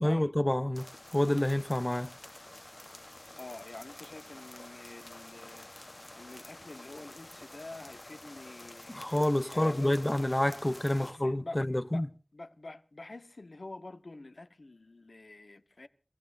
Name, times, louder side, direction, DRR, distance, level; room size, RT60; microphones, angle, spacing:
voice 1, 0.0-2.1 8.9-12.1, left 1 dB, 25° left, 0.7 m, -28 dB
sound 1, 0.7-11.1, left 1 dB, 40° left, 1.1 m, -49 dB
voice 2, 3.4-5.9 6.1-9.2 9.5-10.3 10.9-11.6 11.9-12.1 12.3-15.9, left 2 dB, 80° left, 1.3 m, -46 dB
29.0 x 15.5 x 2.6 m
wide cardioid pair, 45°, 0 cm